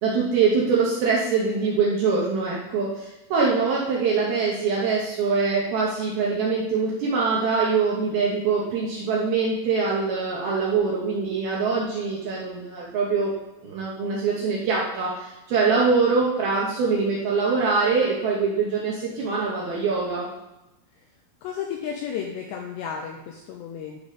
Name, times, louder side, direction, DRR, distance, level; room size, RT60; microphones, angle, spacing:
voice 1, 0.0-13.3 13.6-20.3, right 4 dB, 75° right, -4 dB, 2.3 m, -23 dB
voice 2, 21.4-24.0, left 7 dB, 90° left, 2 dB, 2.5 m, -33 dB
11.5 x 4.1 x 5.0 m, 0.97 s
omnidirectional pair, 5.7 m